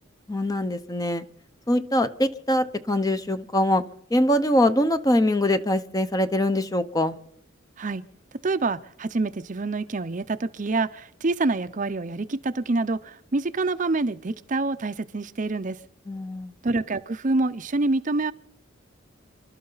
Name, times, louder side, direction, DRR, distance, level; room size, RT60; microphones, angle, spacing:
voice 1, 0.3-1.2 1.7-3.8 4.1-7.1 16.1-16.5, left 1 dB, 20° left, 0.7 m, -23 dB
voice 2, 8.4-15.8 16.6-18.3, right 3 dB, 40° right, 0.6 m, -26 dB
29.0 x 12.5 x 4.0 m
head